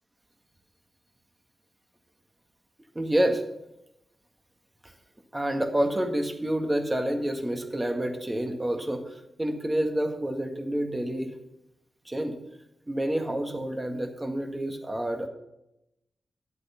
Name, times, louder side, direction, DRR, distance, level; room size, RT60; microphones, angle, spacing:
voice 1, 3.0-3.4 5.3-11.3 12.1-12.4 12.9-15.3, right 1 dB, 20° right, 4 dB, 1.8 m, -28 dB
11.0 x 8.2 x 5.8 m, 0.86 s
cardioid pair, 80°, 0 cm